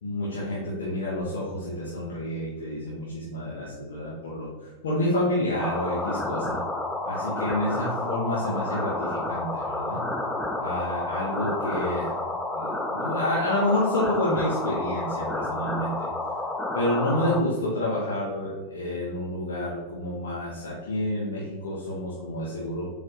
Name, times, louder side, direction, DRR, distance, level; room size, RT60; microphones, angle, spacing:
voice 1, 0.0-6.6 7.0-10.1 10.6-12.1 12.5-16.1 16.7-22.9, left 1 dB, 60° left, -6 dB, 1.4 m, -29 dB
sound 1, 5.6-17.4, left 2 dB, 5° left, 0.6 m, -30 dB
7.7 x 4.0 x 3.1 m, 1.3 s
figure-of-eight pair, 90°, 0 cm